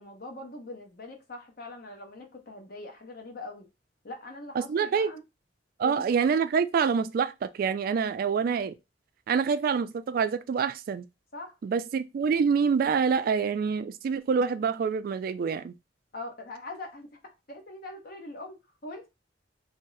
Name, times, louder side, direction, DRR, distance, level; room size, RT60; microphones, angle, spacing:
voice 1, 0.0-3.7 4.0-5.2 5.8-6.1 11.3-11.6 16.1-17.1 17.5-19.1, left 2 dB, 55° left, 0.9 m, -42 dB
voice 2, 4.7-5.1 5.8-8.8 9.3-11.0 11.6-15.7, right 6 dB, 55° right, 0.3 m, -26 dB
2.6 x 2.1 x 3.8 m
head